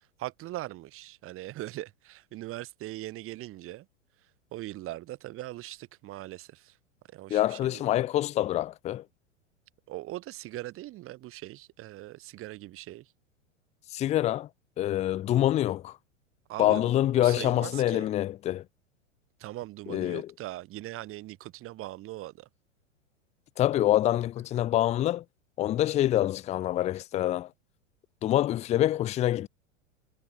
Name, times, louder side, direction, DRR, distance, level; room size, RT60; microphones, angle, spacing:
voice 1, 0.2-3.9 4.5-6.7 7.1-7.9 9.9-13.1 16.5-18.1 19.4-22.5, right 16 dB, 35° right, 6.2 m, -40 dB
voice 2, 7.3-9.0 13.9-14.5 14.8-16.0 16.6-18.6 19.9-20.3 23.6-25.2 25.6-27.5 28.2-29.5, left 13 dB, 15° left, 0.6 m, -26 dB
figure-of-eight pair, 95°, 38 cm